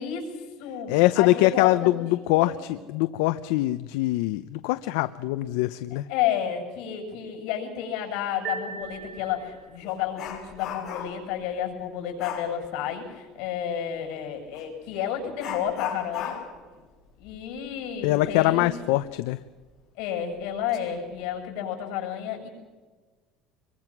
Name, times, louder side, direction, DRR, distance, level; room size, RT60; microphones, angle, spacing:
voice 1, 0.0-2.1 2.3-2.8 6.1-16.4 17.2-18.8 20.0-22.5, left 9 dB, 70° left, 3 dB, 7.4 m, -31 dB
voice 2, 0.9-6.0 18.0-19.4, left 17 dB, 85° left, 12 dB, 0.7 m, -23 dB
sound 1, 8.4-9.9, right 5 dB, 35° right, 4.2 m, -37 dB
Dog, 8.8-9.0 9.4-11.3 12.2-12.5 14.5-14.7 15.4-18.7 19.0-19.1 19.6-19.7 20.4-20.8 21.1-21.4, left 8 dB, 40° left, 6.0 m, -37 dB
25.5 x 23.0 x 6.1 m, 1.3 s
cardioid pair, 160°, 0 cm